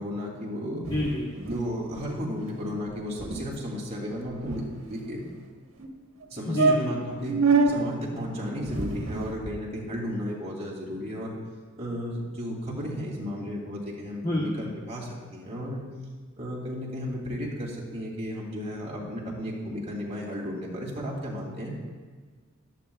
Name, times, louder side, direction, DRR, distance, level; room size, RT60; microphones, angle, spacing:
voice 1, 0.0-0.9 1.5-5.2 6.3-7.4 7.6-11.3 11.8-15.8 16.4-21.7, equal, 30° right, -4 dB, 2.9 m, -34 dB
voice 2, 0.8-1.3 6.5-6.9 8.1-8.2 14.2-14.6, left 1 dB, 25° left, -4 dB, 1.2 m, -28 dB
sound 1, 0.8-1.7 1.9-2.1 2.4-2.6 2.9-3.0 3.2-3.4 4.1-5.1 5.8-5.9 6.2-6.3 6.6-7.7 8.6-9.6, right 4 dB, 75° right, 1.4 m, -27 dB
16.5 x 11.5 x 2.4 m, 1.5 s
head